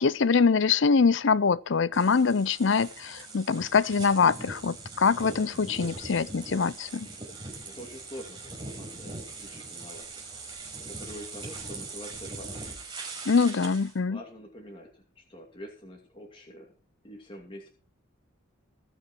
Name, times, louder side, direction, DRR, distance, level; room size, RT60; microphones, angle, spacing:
voice 1, 0.0-7.1 13.3-14.2, left 5 dB, 60° left, 0.5 m, -24 dB
sound 1, 1.9-13.9, right 3 dB, 25° right, 5.2 m, -41 dB
voice 2, 7.6-10.5 10.7-12.7 14.0-16.7 17.0-17.7, equal, 25° left, 2.7 m, -46 dB
20.5 x 7.0 x 4.6 m
head